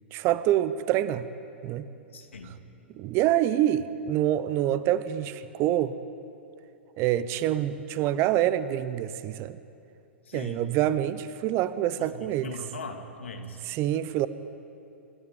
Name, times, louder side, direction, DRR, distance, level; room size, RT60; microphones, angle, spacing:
voice 1, 0.1-1.3 1.6-1.9 2.4-2.5 2.9-6.0 7.0-9.6 10.3-12.5 13.6-14.3, right 12 dB, 40° right, 14 dB, 0.9 m, -26 dB
voice 2, 2.1-2.5 10.3-10.6 12.0-13.6, left 2 dB, 75° left, 5 dB, 2.5 m, -40 dB
26.0 x 13.0 x 9.3 m, 2.7 s
figure-of-eight pair, 105°, 7 cm